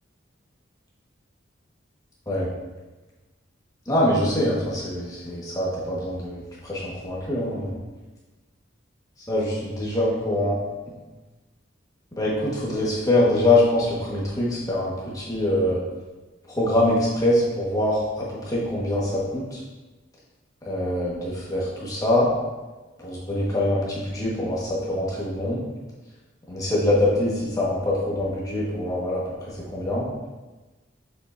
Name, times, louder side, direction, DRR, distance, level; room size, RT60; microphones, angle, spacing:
voice 1, 3.9-7.7 9.3-10.5 12.2-15.8 16.5-19.6 20.7-22.3 23.0-25.6 26.5-29.2 29.7-30.1, left 1 dB, 20° left, -6 dB, 1.4 m, -24 dB
6.6 x 5.5 x 2.6 m, 1.2 s
head